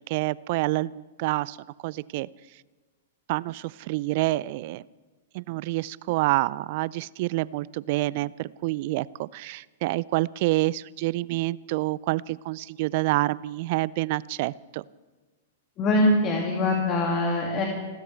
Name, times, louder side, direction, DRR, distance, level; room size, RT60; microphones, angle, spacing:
voice 1, 0.0-1.6 1.8-2.3 3.3-4.8 5.3-14.8, right 19 dB, 50° right, 22 dB, 0.4 m, -27 dB
voice 2, 15.8-17.6, left 1 dB, 30° left, 0 dB, 2.5 m, -23 dB
29.0 x 13.0 x 3.4 m, 1.3 s
hypercardioid pair, 110°, 0 cm